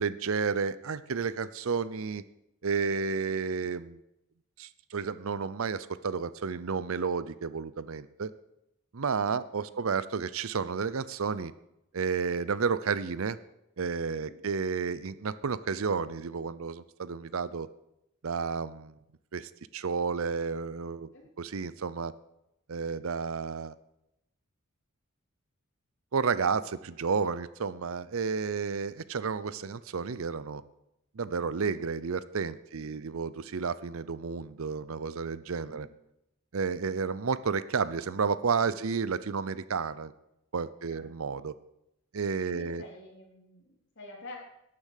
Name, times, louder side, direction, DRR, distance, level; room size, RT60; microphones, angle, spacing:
voice 1, 0.0-2.2 2.6-4.0 4.6-8.3 8.9-11.5 11.9-13.4 13.8-17.7 18.2-18.9 19.3-21.1 21.4-22.1 22.7-23.7 26.1-30.6 31.1-35.9 36.5-40.1 40.5-41.5 42.1-42.8, right 5 dB, 65° right, 16 dB, 0.6 m, -31 dB
voice 2, 9.1-9.4 9.7-9.8 14.1-14.4 21.1-21.3 32.7-33.0 35.6-35.8 40.8-41.1 42.5-44.4, left 2 dB, 55° left, -1 dB, 3.6 m, -49 dB
12.0 x 8.6 x 6.5 m, 0.84 s
head